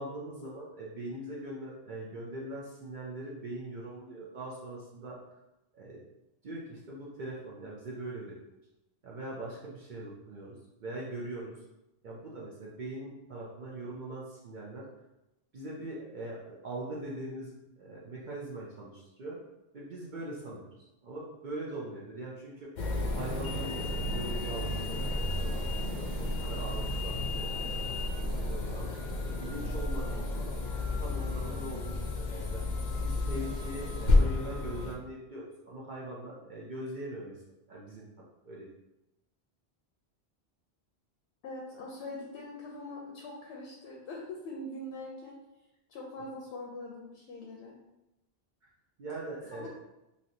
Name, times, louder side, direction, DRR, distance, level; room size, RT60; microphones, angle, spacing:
voice 1, 0.0-5.2 5.7-6.0 6.4-8.3 9.0-11.5 12.0-14.8 15.5-19.4 19.7-20.7 21.0-22.7 23.1-27.8 28.2-28.9 29.2-32.6 33.0-37.3 37.7-38.0 38.4-38.7 48.6-48.7 49.0-49.7, right 1 dB, 55° right, -5 dB, 0.6 m, -41 dB
sound 1, 22.8-34.9, left 2 dB, 55° left, 0.6 m, -31 dB
voice 2, 41.4-45.4 45.9-47.7 49.5-49.7, left 2 dB, 85° left, -2 dB, 0.9 m, -42 dB
3.1 x 2.6 x 2.7 m, 0.94 s
omnidirectional pair, 1.1 m